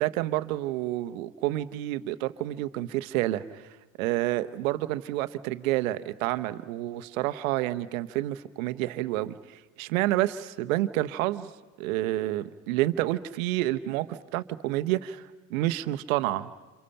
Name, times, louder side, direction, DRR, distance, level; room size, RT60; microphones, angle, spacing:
voice 1, 0.0-3.6 4.0-9.4 9.8-11.5 11.8-15.2 15.5-16.5, right 15 dB, 75° right, 12 dB, 1.0 m, -29 dB
28.5 x 28.0 x 5.7 m, 1.2 s
hypercardioid pair, 70°, 41 cm